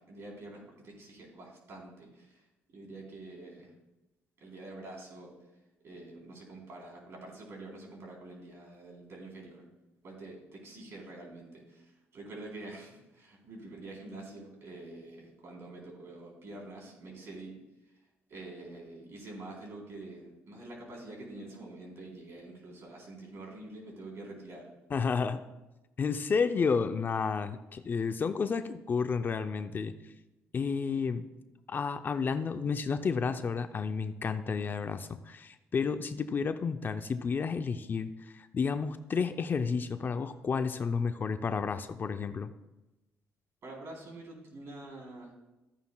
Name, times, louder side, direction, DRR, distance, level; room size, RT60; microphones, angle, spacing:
voice 1, 0.1-2.4 2.7-3.7 4.4-5.3 5.8-9.6 10.0-17.6 18.3-24.7 43.6-45.3, right 2 dB, 55° right, -1 dB, 3.7 m, -46 dB
voice 2, 24.9-25.4 26.0-29.9 30.5-31.2 31.7-42.5, left 5 dB, 40° left, 10 dB, 0.5 m, -31 dB
13.5 x 9.3 x 2.3 m, 1.0 s
cardioid pair, 90°, 5 cm